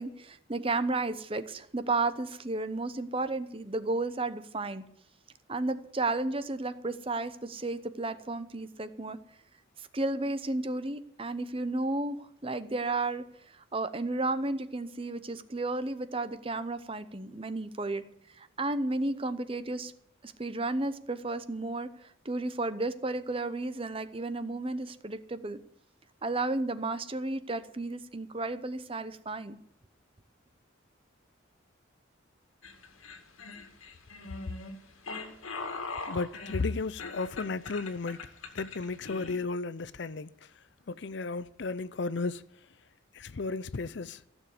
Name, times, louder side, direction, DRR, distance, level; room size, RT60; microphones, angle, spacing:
voice 1, 0.0-4.8 5.5-9.2 9.8-18.0 18.4-19.9 20.2-25.6 26.2-29.6, right 2 dB, 25° right, 0.7 m, -33 dB
sound 1, 32.6-39.4, left 3 dB, 85° left, 2.1 m, -41 dB
voice 2, 36.1-38.2 38.5-40.3 40.9-42.4 43.1-44.2, left 3 dB, 60° left, 0.5 m, -34 dB
15.5 x 7.1 x 9.8 m
head